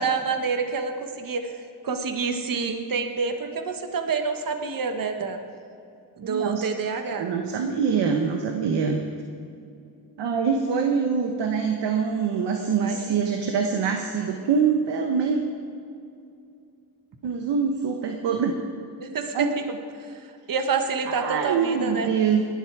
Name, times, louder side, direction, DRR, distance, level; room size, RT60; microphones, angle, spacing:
voice 1, 0.0-5.4 6.2-7.3 12.6-13.4 19.0-22.1, right 5 dB, 50° right, 6 dB, 1.5 m, -28 dB
voice 2, 6.2-6.6 7.1-9.0 10.2-15.4 17.2-18.5 19.3-19.5 21.1-22.4, right 6 dB, 85° right, 4 dB, 1.2 m, -24 dB
19.0 x 11.5 x 4.7 m, 2.5 s
cardioid pair, 80°, 42 cm